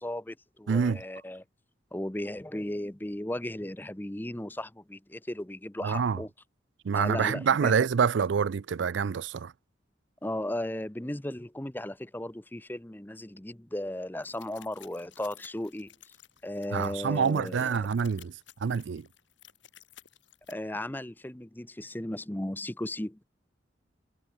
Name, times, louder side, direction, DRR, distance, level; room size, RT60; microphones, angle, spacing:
voice 1, 0.0-1.4 1.9-6.3 6.9-7.7 10.2-15.9 16.4-17.9 20.5-23.2, left 1 dB, 10° left, 0.7 m, -36 dB
voice 2, 0.7-1.0 5.8-6.2 6.8-9.5 16.7-19.1, right 6 dB, 80° right, 0.4 m, -27 dB
sound 1, 14.2-20.5, left 11 dB, 90° left, 4.4 m, -55 dB
head